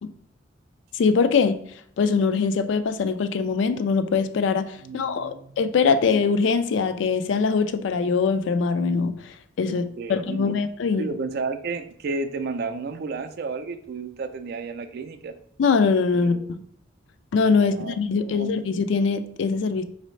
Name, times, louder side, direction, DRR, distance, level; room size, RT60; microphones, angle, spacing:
voice 1, 0.9-1.6 2.0-9.8 10.1-11.1 15.6-16.6 17.3-19.8, left 5 dB, 70° left, 0.3 m, -22 dB
voice 2, 4.8-5.6 9.6-10.6 10.9-15.3 16.1-16.5 17.5-18.5, right 4 dB, 55° right, 0.4 m, -32 dB
4.0 x 2.6 x 3.1 m
head